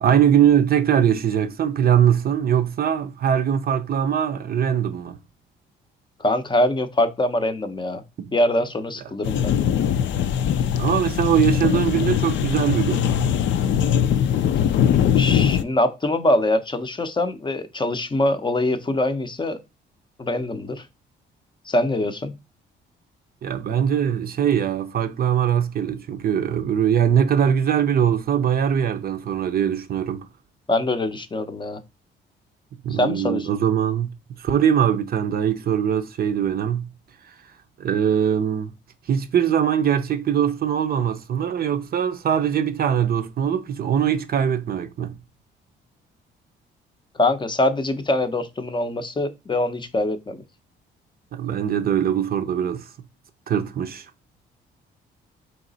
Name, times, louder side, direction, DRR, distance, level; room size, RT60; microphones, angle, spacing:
voice 1, 0.0-5.2 8.2-8.4 10.8-13.0 23.4-30.3 32.8-36.9 37.8-38.7 39.1-45.2 51.3-52.9 53.5-54.1, right 9 dB, 50° right, 0.5 m, -21 dB
voice 2, 6.2-8.0 8.3-9.5 15.2-19.6 20.2-20.9 21.7-22.3 30.7-31.8 32.9-33.5 47.1-50.4, left 1 dB, 25° left, 0.6 m, -23 dB
sound 1, 9.2-15.6, left 9 dB, 70° left, 0.5 m, -21 dB
4.0 x 3.1 x 3.9 m
cardioid pair, 90°, 20 cm